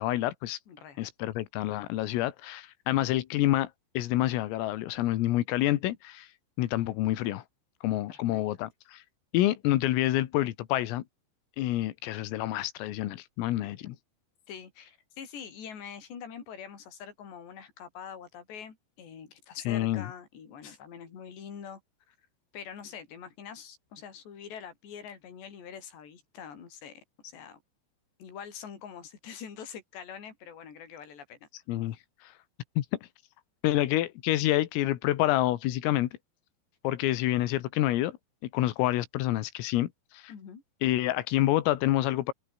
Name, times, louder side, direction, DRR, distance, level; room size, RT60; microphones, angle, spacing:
voice 1, 0.0-0.6 1.0-6.3 6.6-7.4 7.8-9.0 9.3-11.0 11.6-14.0 19.6-20.1 31.7-32.0 32.2-32.3 32.8-32.9 33.6-36.1 36.8-38.2 38.5-40.3 40.8-42.3, left 15 dB, 90° left, 4.2 m, -28 dB
voice 2, 0.7-1.0 8.1-8.5 13.5-13.7 14.5-21.8 22.1-22.2 22.5-27.6 28.2-31.4 40.3-40.6, left 7 dB, 60° left, 6.9 m, -44 dB
omnidirectional pair, 5.8 m